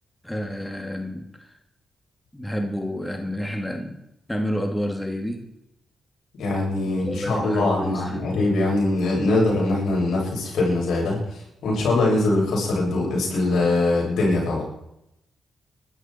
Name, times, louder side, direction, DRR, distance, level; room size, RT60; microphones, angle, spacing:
voice 1, 0.2-1.5 2.3-4.0 4.3-5.4 6.8-8.2, equal, 10° left, 3 dB, 2.7 m, -29 dB
voice 2, 6.4-14.6, left 2 dB, 80° left, -2 dB, 7.6 m, -22 dB
20.5 x 13.0 x 4.6 m, 0.83 s
supercardioid pair, 60°, 0 cm